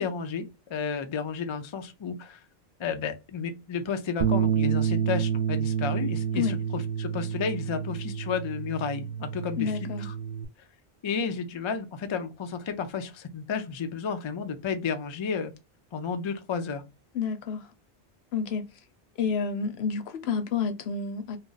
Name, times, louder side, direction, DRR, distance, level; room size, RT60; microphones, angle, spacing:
voice 1, 0.0-2.4 2.8-10.1 11.0-15.5 15.9-16.8, left 6 dB, 55° left, 0.3 m, -32 dB
Bass guitar, 4.2-10.5, right 8 dB, 80° right, 0.8 m, -29 dB
voice 2, 9.6-10.1 17.1-17.7 18.3-18.6 19.2-21.4, left 6 dB, 85° left, 0.9 m, -29 dB
2.4 x 2.0 x 3.8 m
omnidirectional pair, 1.0 m